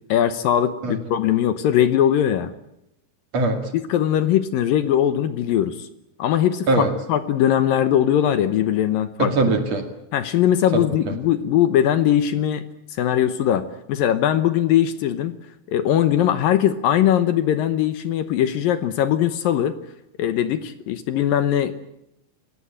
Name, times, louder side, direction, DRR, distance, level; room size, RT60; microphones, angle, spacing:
voice 1, 0.1-2.5 3.9-5.9 6.2-9.3 10.1-12.6 12.9-15.4 15.7-19.8 20.2-21.7, left 10 dB, 70° left, 12 dB, 2.5 m, -20 dB
voice 2, 3.3-3.7 6.7-6.9 9.2-9.8 10.7-10.8, right 3 dB, 45° right, 6 dB, 3.0 m, -21 dB
29.5 x 17.0 x 8.8 m, 0.82 s
omnidirectional pair, 4.6 m